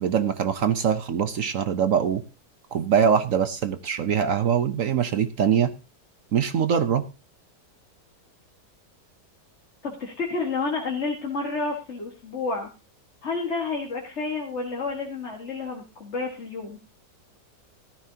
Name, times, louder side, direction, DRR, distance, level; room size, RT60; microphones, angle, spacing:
voice 1, 0.0-2.2 2.7-5.7 6.3-7.1, right 8 dB, 60° right, 11 dB, 1.0 m, -23 dB
voice 2, 9.8-12.7 13.2-16.8, left 3 dB, 40° left, 1 dB, 1.9 m, -30 dB
14.5 x 13.0 x 2.8 m, 0.28 s
omnidirectional pair, 1.9 m